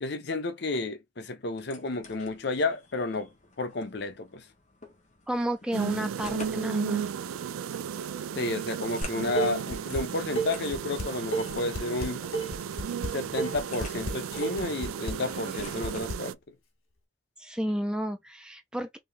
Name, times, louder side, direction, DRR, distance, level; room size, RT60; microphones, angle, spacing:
voice 1, 0.0-3.3 3.6-4.4 8.3-12.2 13.1-16.4, left 2 dB, 55° left, 0.7 m, -31 dB
sound 1, 1.5-16.1, left 3 dB, 35° left, 1.0 m, -50 dB
voice 2, 5.3-7.1 17.4-19.0, equal, 5° right, 0.4 m, -31 dB
sound 2, 5.7-16.3, right 7 dB, 85° right, 0.3 m, -35 dB
Dishes pots and pans, 9.0-10.0 10.4-16.2, right 2 dB, 85° left, 1.4 m, -32 dB
3.4 x 2.7 x 3.4 m
head